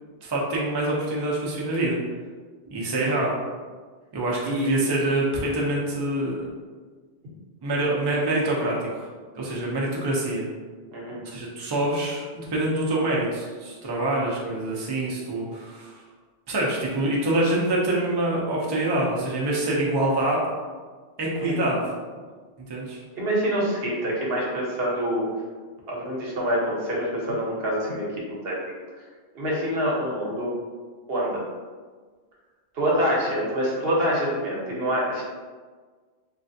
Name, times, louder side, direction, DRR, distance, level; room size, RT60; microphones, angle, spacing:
voice 1, 0.2-2.0 2.7-3.3 4.1-6.4 7.6-9.1 9.4-10.5 11.3-16.0 16.5-20.4 21.2-21.8 22.7-23.0, right 1 dB, 35° right, -4 dB, 0.5 m, -25 dB
voice 2, 10.9-11.2 21.4-21.7 23.1-25.3 25.9-28.1 28.4-28.6 29.3-30.5 31.1-31.5 32.7-35.2, equal, 75° right, -4 dB, 1.0 m, -26 dB
3.2 x 2.4 x 2.6 m, 1.5 s
omnidirectional pair, 1.0 m